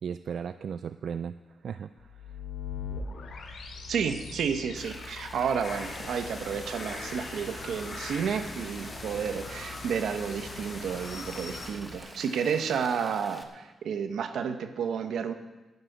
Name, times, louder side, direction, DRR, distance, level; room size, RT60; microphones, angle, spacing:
voice 1, 0.0-1.3 1.6-2.4, right 7 dB, 60° right, 12 dB, 0.3 m, -36 dB
sound 1, 2.0-12.0, left 4 dB, 80° left, 2.4 m, -43 dB
voice 2, 3.9-15.3, right 7 dB, 80° right, 8 dB, 1.1 m, -31 dB
Rain, 4.8-13.4, equal, ahead, 1.2 m, -48 dB
sound 2, 5.6-11.7, left 2 dB, 40° left, 3.0 m, -41 dB
11.5 x 9.8 x 8.1 m, 1.1 s
wide cardioid pair, 155°, 0 cm